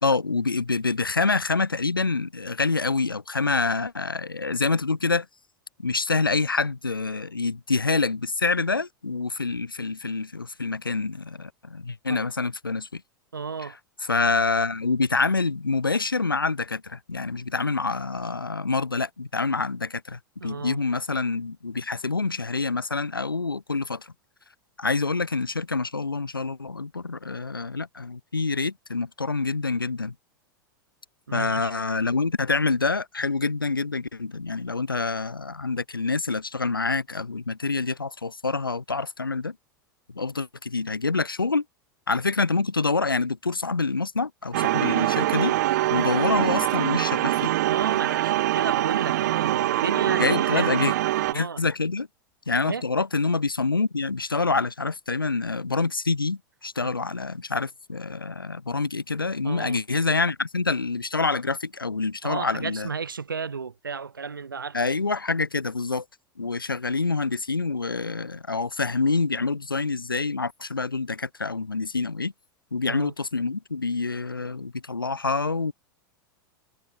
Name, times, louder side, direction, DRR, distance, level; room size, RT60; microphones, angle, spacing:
voice 1, 0.0-5.3 5.8-13.0 13.6-13.7 14.0-24.1 24.8-30.1 31.3-39.5 40.1-41.6 42.1-45.5 45.9-47.5 50.1-50.9 51.3-52.1 52.5-62.9 64.7-66.0 66.4-72.3 72.7-75.7, left 3 dB, 80° left, 1.9 m, -26 dB
voice 2, 13.3-13.8 20.4-20.8 31.3-31.7 47.7-51.0 51.3-51.6 52.6-52.8 56.8-56.9 59.4-59.8 62.2-64.8 72.9-73.1, right 5 dB, 75° right, 2.3 m, -33 dB
sound 1, 44.5-51.3, right 15 dB, 55° right, 0.6 m, -24 dB
figure-of-eight pair, 90°, 11 cm